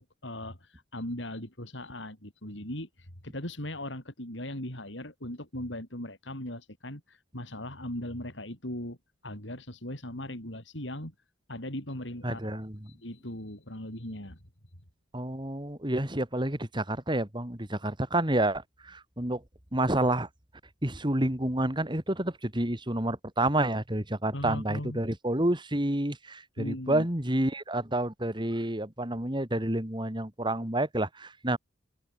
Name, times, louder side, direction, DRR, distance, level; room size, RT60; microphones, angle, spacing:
voice 1, 0.0-9.0 9.2-11.1 11.5-14.4 24.3-25.0 26.6-27.1, left 1 dB, 70° left, 7.6 m, -39 dB
voice 2, 12.2-12.9 15.1-19.4 19.7-20.3 20.8-31.6, right 1 dB, 25° right, 3.1 m, -29 dB
open air
head